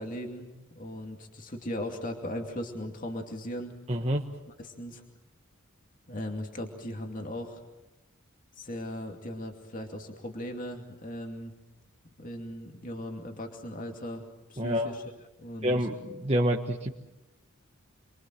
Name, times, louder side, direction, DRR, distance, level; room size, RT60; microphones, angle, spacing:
voice 1, 0.0-3.7 4.6-5.0 6.1-7.6 8.6-11.5 12.2-15.0 15.4-15.8, equal, 40° left, 3 dB, 2.6 m, -38 dB
voice 2, 3.9-4.2 14.6-14.9 15.6-16.9, equal, 30° right, 0 dB, 1.4 m, -27 dB
28.5 x 23.5 x 7.8 m, 0.99 s
head